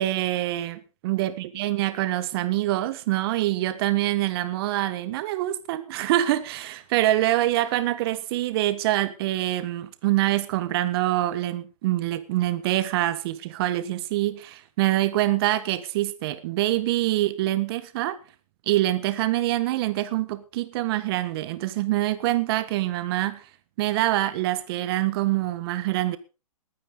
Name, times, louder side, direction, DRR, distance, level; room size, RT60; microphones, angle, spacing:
voice 1, 0.0-18.2 18.7-23.4 23.8-26.2, right 15 dB, 40° right, 13 dB, 1.5 m, -25 dB
20.5 x 9.5 x 4.0 m, 0.32 s
hypercardioid pair, 130°, 19 cm